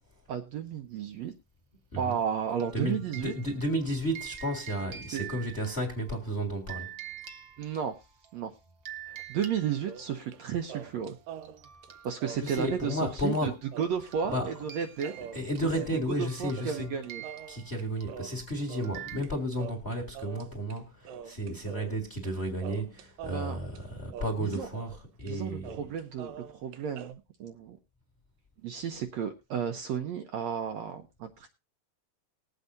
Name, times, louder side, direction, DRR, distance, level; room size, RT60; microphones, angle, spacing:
voice 1, 0.3-1.3 2.0-3.3 5.1-5.3 7.6-8.0 8.3-8.5 9.1-11.2 12.0-13.5 13.8-15.1 16.2-17.2 23.3-23.6 24.4-24.7 25.3-27.8 28.6-31.5, right 8 dB, 70° right, 1.8 m, -33 dB
sound 1, 2.1-8.3 8.8-10.6 11.0-11.2 11.4-19.2, right 11 dB, 50° right, 1.6 m, -47 dB
voice 2, 2.7-6.9 12.4-13.6 14.3-14.5 15.2-16.9 17.5-25.8, equal, 25° left, 1.6 m, -32 dB
sound 2, 9.9-10.4 10.7-13.1 13.4-13.5 13.7-19.3 19.6-20.8 21.1-22.3 22.6-25.0 25.3-25.4 25.6-27.1, right 8 dB, 85° right, 2.5 m, -45 dB
20.5 x 8.1 x 2.7 m
omnidirectional pair, 3.8 m